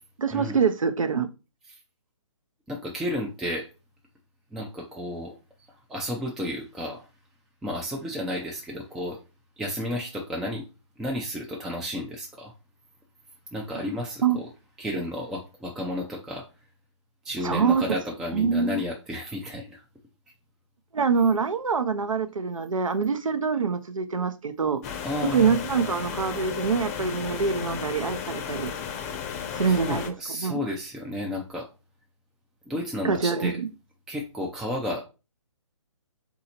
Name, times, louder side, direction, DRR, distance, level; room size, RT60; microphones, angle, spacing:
voice 1, 0.2-1.3 14.2-14.4 17.4-17.8 18.3-18.8 20.9-24.8 25.2-28.7 29.5-30.1 30.4-30.6 33.0-33.7, right 5 dB, 85° right, 0.8 m, -25 dB
voice 2, 2.7-3.7 4.5-5.4 5.9-7.1 7.6-9.2 9.6-10.6 11.0-12.5 13.5-14.5 14.8-16.4 17.2-19.8 25.0-25.5 29.7-31.7 32.7-33.6 34.1-35.0, left 1 dB, ahead, 0.3 m, -32 dB
sound 1, 24.8-30.1, left 8 dB, 30° left, 0.6 m, -34 dB
4.0 x 2.8 x 4.2 m
hypercardioid pair, 145°, 17 cm